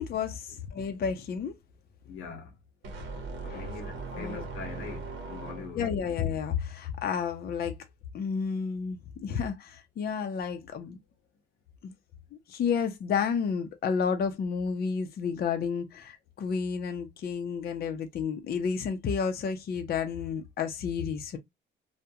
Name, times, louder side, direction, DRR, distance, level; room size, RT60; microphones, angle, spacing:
voice 1, 0.0-1.5 3.4-3.6 4.1-4.4 5.8-7.8 8.1-11.0 11.8-11.9 12.5-21.4, left 6 dB, 50° left, 0.5 m, -31 dB
voice 2, 2.0-2.6 3.5-5.9, left 4 dB, 90° left, 0.7 m, -42 dB
sound 1, 2.8-6.0, right 4 dB, 80° right, 0.7 m, -39 dB
2.2 x 2.1 x 2.7 m
cardioid pair, 90°, 20 cm